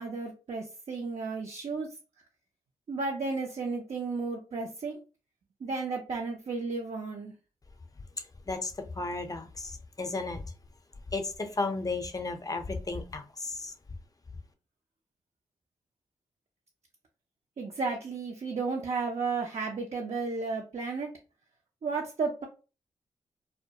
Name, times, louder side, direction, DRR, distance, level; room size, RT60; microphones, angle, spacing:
voice 1, 0.0-1.9 2.9-5.0 5.6-7.3 17.6-21.1 21.8-22.5, right 4 dB, 55° right, -1 dB, 0.5 m, -33 dB
voice 2, 8.5-10.4 11.1-13.7, left 3 dB, 25° left, 7 dB, 0.6 m, -34 dB
2.1 x 2.1 x 2.7 m, 0.33 s
supercardioid pair, 40°, 13 cm